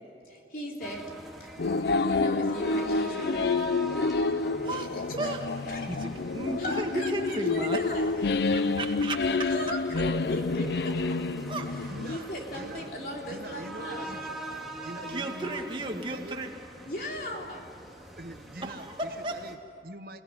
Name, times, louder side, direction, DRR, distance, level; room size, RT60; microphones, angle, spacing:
voice 1, 0.3-1.1 1.4-3.8 4.8-5.3 5.7-5.8 6.6-8.1 9.4-11.2 12.1-14.1 16.9-17.6, equal, 55° left, 0 dB, 3.9 m, -37 dB
sound 1, 0.8-19.6, right 1 dB, ahead, 2.4 m, -43 dB
sound 2, 1.6-12.2, left 3 dB, 70° left, 0.5 m, -28 dB
voice 2, 5.2-7.8 8.4-9.5 11.5-11.7 12.1-12.3 15.1-16.5 18.6-19.4, right 2 dB, 30° right, 3 dB, 2.0 m, -34 dB
voice 3, 11.9-12.9 13.3-14.3 14.8-16.4 18.2-20.2, right 1 dB, 55° right, 8 dB, 1.1 m, -44 dB
29.0 x 18.0 x 9.6 m, 2.9 s
head